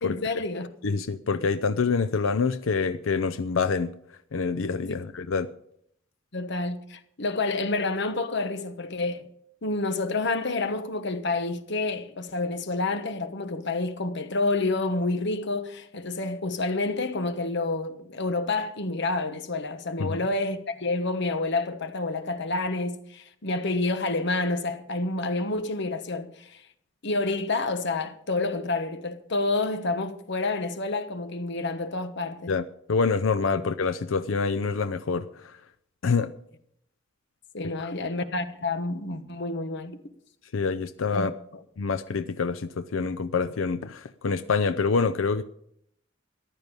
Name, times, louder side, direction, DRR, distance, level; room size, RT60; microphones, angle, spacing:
voice 1, 0.0-0.7 4.9-5.0 6.3-9.2 9.6-26.7 27.0-32.5 37.5-40.0 41.1-41.3 41.5-41.6, left 3 dB, 60° left, 1.2 m, -29 dB
voice 2, 0.8-3.9 4.3-5.5 20.0-20.2 32.5-35.6 36.0-36.3 40.5-41.3 41.8-45.4, left 4 dB, 85° left, 0.5 m, -26 dB
14.5 x 10.5 x 5.3 m
head